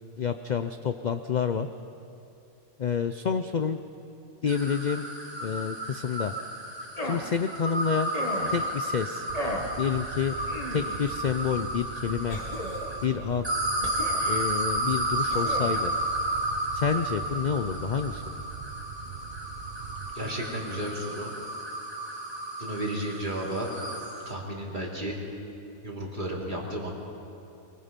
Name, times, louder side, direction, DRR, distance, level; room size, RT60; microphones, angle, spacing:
voice 1, 0.2-1.7 2.8-3.8 4.4-5.1 5.4-6.3 7.0-8.1 8.5-9.3 9.8-10.3 10.7-12.4 13.0-13.5 14.3-15.9 16.7-18.4, left 7 dB, 60° left, 9 dB, 0.4 m, -28 dB
sound 1, 4.5-13.0 13.4-24.3, right 1 dB, 20° right, 2.1 m, -32 dB
sound 2, 7.0-7.3 8.1-8.7 9.3-9.8 10.5-11.1 12.3-13.0 13.8-14.5 15.3-15.8, left 1 dB, 25° left, 1.7 m, -35 dB
Fire, 9.3-20.1, right 7 dB, 50° right, 0.9 m, -42 dB
voice 2, 20.1-21.3 22.6-23.7 24.2-25.1 25.8-26.9, right 1 dB, 35° right, -2 dB, 3.2 m, -33 dB
23.5 x 22.5 x 5.2 m, 2.8 s
omnidirectional pair, 1.5 m